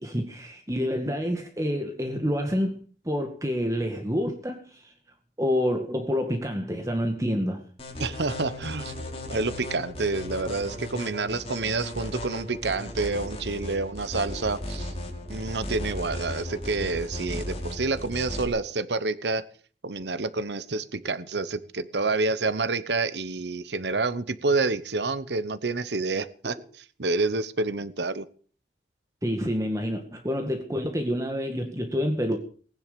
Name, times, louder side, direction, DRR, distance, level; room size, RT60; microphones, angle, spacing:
voice 1, 0.0-2.8 3.1-4.9 5.4-7.6 26.4-26.5 29.2-32.4, equal, 20° right, 4 dB, 2.0 m, -28 dB
sound 1, 7.8-18.5, left 1 dB, 35° left, 4.5 m, -36 dB
voice 2, 8.0-8.9 9.3-14.9 15.3-19.4 19.8-28.3, right 3 dB, 80° right, 15 dB, 1.0 m, -28 dB
19.5 x 10.5 x 6.9 m, 0.43 s
head